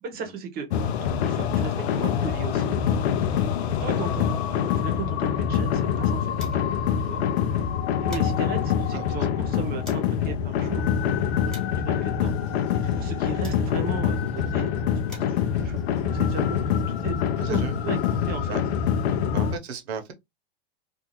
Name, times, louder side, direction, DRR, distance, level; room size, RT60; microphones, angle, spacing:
voice 1, 0.0-0.7 1.2-2.7 3.8-4.3 4.6-6.3 7.0-7.2 8.0-10.9 11.8-12.3 12.7-14.7 15.3-17.2 17.5-18.6 19.1-19.3, right 5 dB, 30° right, 0.8 m, -36 dB
sound 1, 0.7-19.6, left 8 dB, 85° left, 0.6 m, -25 dB
sound 2, 5.1-6.9 7.2-7.3 7.7-10.2 10.8-14.0 14.7-16.9, equal, ahead, 1.1 m, -49 dB
voice 2, 8.9-9.3 11.3-11.5 17.4-17.8 18.5-18.6 19.3-20.1, right 7 dB, 80° right, 1.0 m, -37 dB
sound 3, 12.2-14.8 15.2-18.0, left 6 dB, 20° left, 0.6 m, -43 dB
2.6 x 2.4 x 2.9 m
supercardioid pair, 135°, 32 cm